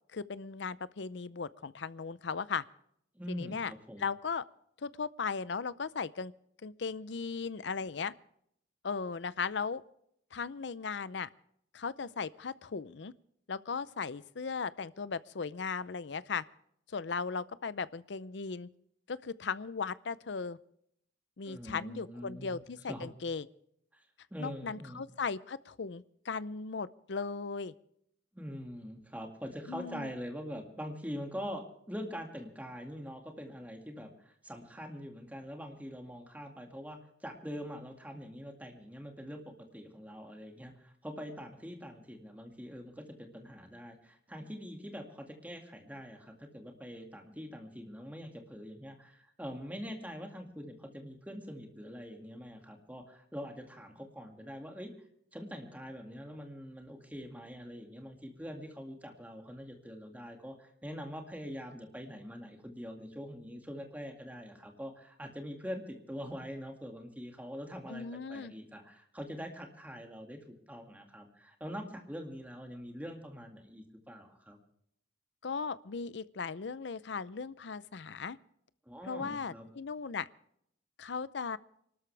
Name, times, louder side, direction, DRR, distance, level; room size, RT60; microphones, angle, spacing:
voice 1, 0.1-2.6 3.3-3.7 4.0-4.4 4.8-6.3 6.6-8.1 8.8-9.8 10.3-11.3 11.7-13.1 13.5-16.4 16.9-18.7 19.1-20.6 21.4-23.5 24.4-27.7 29.7-30.1 67.9-68.5 75.4-78.4 79.1-80.3 81.0-81.6, left 5 dB, 70° left, 17 dB, 0.6 m, -37 dB
voice 2, 3.1-4.1 21.4-22.6 22.9-23.1 23.9-24.1 24.3-25.0 28.3-54.9 55.3-74.6 78.9-79.7, equal, 10° right, 3 dB, 2.1 m, -44 dB
26.0 x 13.0 x 3.4 m, 0.71 s
head